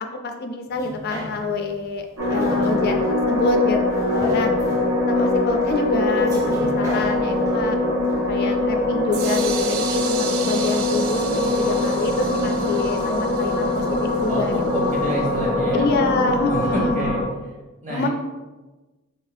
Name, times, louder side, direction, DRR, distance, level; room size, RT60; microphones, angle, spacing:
voice 1, 0.2-2.0 2.3-4.5 5.1-7.8 8.3-13.8 14.2-14.5 15.7-16.9 17.9-18.1, left 3 dB, 45° left, 5 dB, 0.3 m, -26 dB
sound 1, 0.7-9.2 9.6-9.7, left 1 dB, 15° right, 0.8 m, -36 dB
sound 2, 2.2-17.2, left 2 dB, 85° right, 1.2 m, -22 dB
sound 3, 9.1-14.9, right 7 dB, 65° right, 0.4 m, -34 dB
voice 2, 14.7-15.9 16.5-17.5 17.8-18.1, right 1 dB, 30° right, -4 dB, 1.2 m, -28 dB
4.1 x 3.5 x 2.6 m, 1.2 s
head